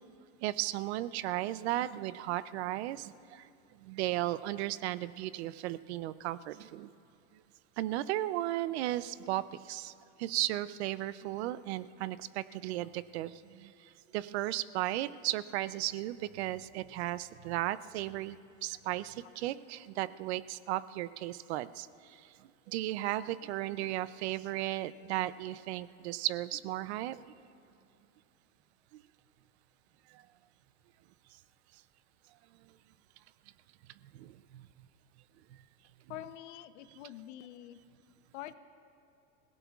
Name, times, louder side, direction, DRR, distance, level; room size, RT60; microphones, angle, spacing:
voice 1, 0.4-3.5 3.8-6.9 7.8-9.9 10.2-27.3 28.9-29.0 30.1-30.2 34.1-34.7, right 15 dB, 65° right, 16 dB, 0.5 m, -35 dB
voice 2, 36.1-37.8 38.3-38.5, left 13 dB, 80° left, 12 dB, 0.8 m, -45 dB
28.0 x 17.0 x 2.4 m, 2.6 s
supercardioid pair, 175°, 35 cm